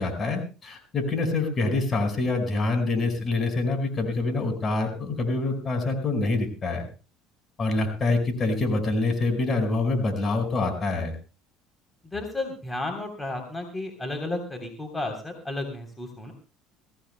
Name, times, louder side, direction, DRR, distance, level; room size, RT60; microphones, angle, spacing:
voice 1, 0.0-6.8 7.6-11.1, left 3 dB, 40° left, 5 dB, 5.0 m, -26 dB
voice 2, 12.1-16.3, left 2 dB, 15° left, 4 dB, 3.4 m, -33 dB
23.0 x 16.5 x 2.2 m, 0.34 s
hypercardioid pair, 75°, 0 cm